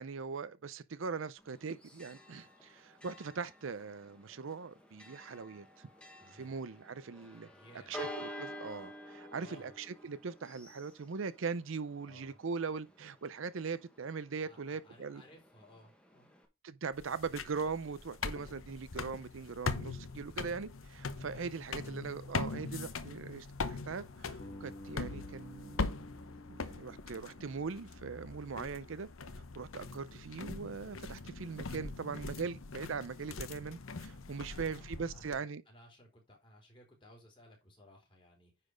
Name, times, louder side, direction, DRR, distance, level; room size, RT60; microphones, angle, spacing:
voice 1, 0.0-5.9 6.3-7.5 7.9-15.2 16.6-25.9 26.5-29.1 29.6-35.6, right 5 dB, 65° right, 0.5 m, -40 dB
Church bell, 1.4-16.5, left 1 dB, 5° left, 1.4 m, -51 dB
voice 2, 6.2-6.5 7.5-8.1 9.4-9.7 12.1-12.4 14.4-16.3 20.2-20.6 21.3-21.9 34.4-38.5, left 1 dB, 25° left, 3.4 m, -59 dB
sound 1, 16.9-35.4, left 4 dB, 70° left, 0.9 m, -42 dB
Bass guitar, 24.4-28.5, equal, 40° left, 1.8 m, -52 dB
9.8 x 4.2 x 5.1 m
head